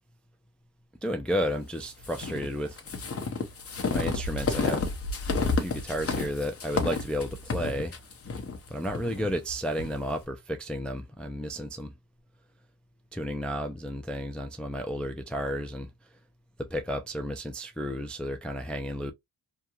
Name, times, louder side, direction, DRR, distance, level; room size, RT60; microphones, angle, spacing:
voice 1, 1.0-2.8 3.9-4.9 5.5-8.0 8.7-11.9 13.1-15.9 16.6-19.1, equal, 5° left, 0.4 m, -32 dB
sound 1, 2.0-9.9, left 4 dB, 35° left, 0.8 m, -31 dB
2.9 x 2.3 x 2.3 m
cardioid pair, 90°, 40 cm